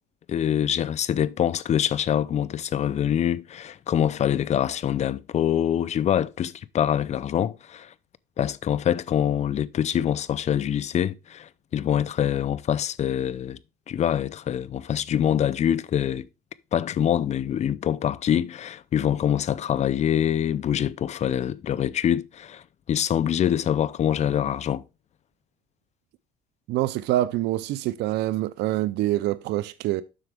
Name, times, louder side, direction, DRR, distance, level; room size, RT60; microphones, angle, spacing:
voice 1, 0.3-7.9 8.4-13.6 13.9-16.3 16.7-22.6 22.9-24.8, left 10 dB, 40° left, 0.5 m, -25 dB
voice 2, 26.7-30.0, right 15 dB, 80° right, 0.5 m, -25 dB
7.7 x 5.9 x 3.4 m
cardioid pair, 110°, 17 cm